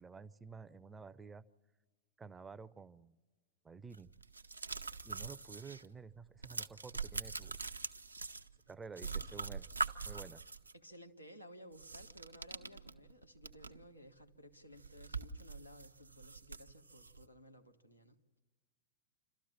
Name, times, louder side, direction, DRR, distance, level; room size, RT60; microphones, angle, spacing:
voice 1, 0.0-1.4 2.2-3.2 3.6-4.1 5.0-7.6 8.7-9.7 10.1-10.4, right 5 dB, 15° right, 16 dB, 0.5 m, -51 dB
sound 1, 3.9-5.9 6.1-8.7 9.0-10.7 11.7-13.9 14.2-14.3 14.7-17.2, right 4 dB, 80° right, 0.6 m, -43 dB
voice 2, 10.7-18.4, equal, 90° left, 3 dB, 1.2 m, -57 dB
27.5 x 13.0 x 7.3 m, 1.3 s
figure-of-eight pair, 90°, 0 cm